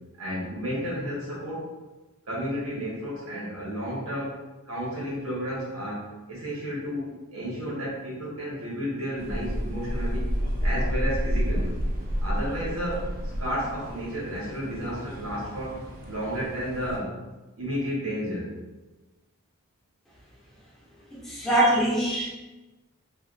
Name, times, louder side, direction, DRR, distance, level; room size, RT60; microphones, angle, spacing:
voice 1, 0.2-1.7 2.3-4.4 4.7-10.2 10.6-11.7 12.2-13.1 13.4-17.1 17.6-18.5, equal, 90° right, -6 dB, 1.2 m, -32 dB
sound 1, 9.2-17.0, equal, 45° right, 0.4 m, -30 dB
voice 2, 21.3-22.3, right 1 dB, ahead, -6 dB, 0.6 m, -22 dB
3.2 x 2.3 x 2.5 m, 1.1 s
head